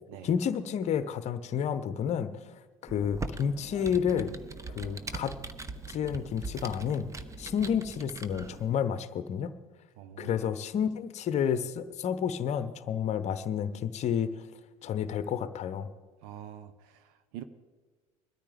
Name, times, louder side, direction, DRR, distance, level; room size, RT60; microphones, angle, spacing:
voice 1, 0.2-2.3 2.8-4.4 4.8-5.4 5.9-7.1 7.4-9.5 10.2-14.4 14.8-15.9, left 8 dB, 40° left, 13 dB, 0.9 m, -30 dB
Computer keyboard, 2.9-8.7, right 3 dB, 15° right, 0.9 m, -41 dB
voice 2, 10.0-10.4 16.2-17.4, right 10 dB, 60° right, 12 dB, 0.9 m, -45 dB
21.0 x 13.5 x 3.5 m, 1.4 s
figure-of-eight pair, 65°, 18 cm